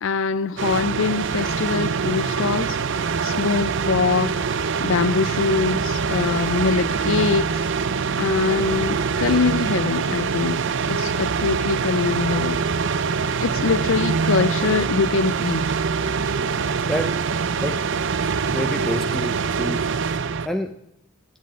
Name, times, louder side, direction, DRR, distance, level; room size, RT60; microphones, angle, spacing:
voice 1, 0.0-4.4 4.8-7.7 8.2-10.6 10.9-12.6 13.4-15.6, left 4 dB, 65° left, 0.4 m, -23 dB
sound 1, 0.6-20.5, right 5 dB, 60° right, 0.6 m, -24 dB
voice 2, 18.5-19.9 20.4-20.8, equal, ahead, 0.5 m, -28 dB
10.5 x 8.1 x 9.5 m
head